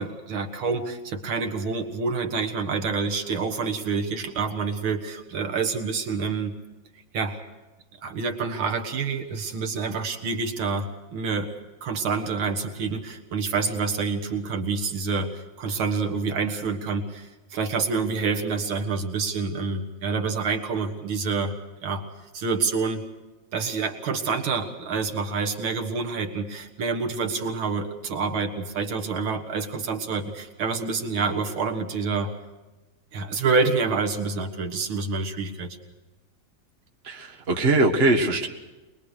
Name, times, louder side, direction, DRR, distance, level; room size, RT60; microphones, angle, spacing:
voice 1, 0.0-6.6 7.1-7.4 8.0-11.5 11.8-21.6 21.8-22.1 22.3-23.0 23.5-32.3 33.1-35.8, right 4 dB, 80° right, 4 dB, 2.3 m, -27 dB
voice 2, 37.0-38.5, right 2 dB, 30° right, 3 dB, 1.8 m, -21 dB
22.5 x 22.0 x 6.6 m, 1.1 s
omnidirectional pair, 2.2 m